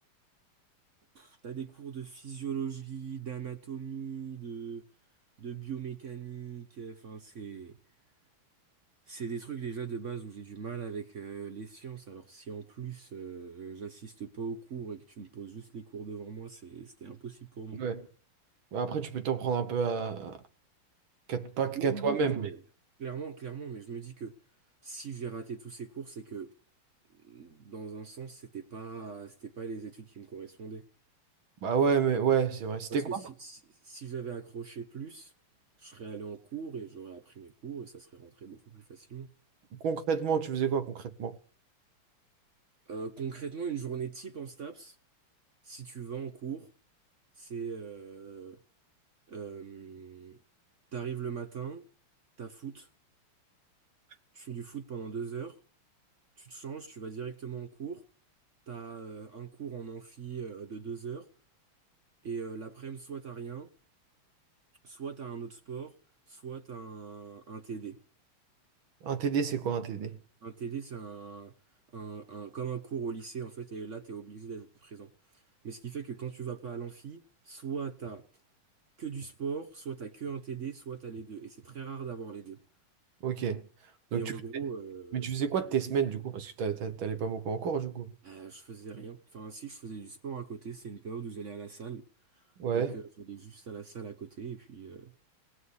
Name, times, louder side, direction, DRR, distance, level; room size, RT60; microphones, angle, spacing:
voice 1, 1.1-4.8 5.4-7.8 9.1-17.8 21.7-22.6 23.0-24.3 24.8-26.5 27.2-30.8 32.9-35.3 35.8-39.3 42.9-45.0 45.6-46.7 47.4-48.6 49.3-50.4 50.9-51.8 52.4-52.9 54.3-55.6 56.4-58.0 58.7-61.3 62.2-63.7 64.8-65.9 66.3-68.0 70.4-71.5 71.9-75.1 75.6-78.2 79.0-82.6 84.1-85.3 88.2-92.0 92.7-95.1, right 6 dB, 50° right, 0.9 m, -40 dB
voice 2, 18.7-20.4 21.3-22.5 31.6-33.2 39.8-41.4 69.0-70.2 83.2-83.6 84.1-84.2 85.1-88.1 92.6-92.9, right 6 dB, 65° right, 1.8 m, -29 dB
18.5 x 6.3 x 9.6 m
omnidirectional pair, 2.4 m